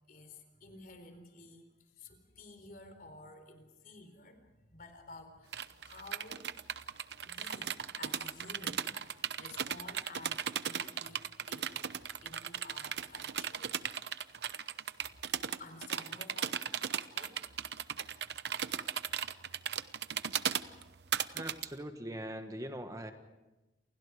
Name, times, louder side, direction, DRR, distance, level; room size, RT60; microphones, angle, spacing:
voice 1, 0.1-6.5 7.2-13.8 14.8-15.0 15.6-16.6 17.1-17.4 21.3-21.4, left 2 dB, 50° left, 7 dB, 4.1 m, -53 dB
sound 1, 5.5-21.7, right 8 dB, 70° right, 0.9 m, -37 dB
voice 2, 21.3-23.1, right 1 dB, 20° right, 6 dB, 1.4 m, -41 dB
29.0 x 28.5 x 4.9 m, 1.0 s
head